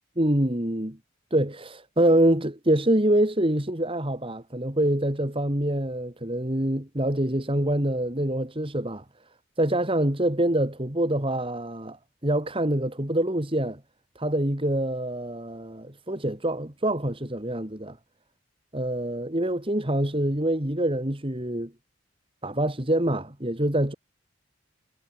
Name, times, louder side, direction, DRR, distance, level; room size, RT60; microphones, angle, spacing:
voice 1, 0.2-1.0 1.3-9.0 9.6-12.0 12.2-13.8 14.2-18.0 18.7-21.7 22.4-23.9, right 1 dB, 25° right, 2.8 m, -25 dB
head